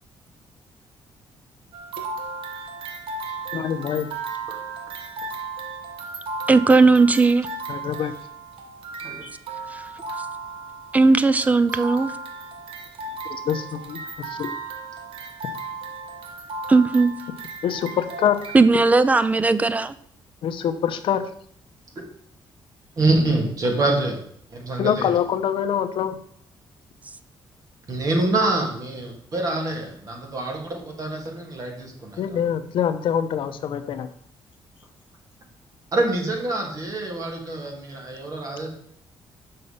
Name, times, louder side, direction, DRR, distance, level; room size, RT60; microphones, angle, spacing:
sound 1, 1.7-18.7, right 4 dB, 80° right, 1.2 m, -35 dB
voice 1, 3.5-4.1 7.7-8.1 9.2-9.3 13.3-14.5 17.6-18.4 20.4-21.3 24.8-26.2 32.2-34.1, left 9 dB, 70° left, 10 dB, 0.8 m, -25 dB
voice 2, 6.5-7.5 10.9-12.1 16.7-17.1 18.5-19.9, right 3 dB, 15° right, 14 dB, 0.4 m, -17 dB
voice 3, 23.0-24.2 24.5-25.1 27.9-32.4 35.9-38.7, right 2 dB, 40° right, 1 dB, 2.1 m, -25 dB
6.6 x 5.6 x 5.5 m, 0.65 s
cardioid pair, 155°, 9 cm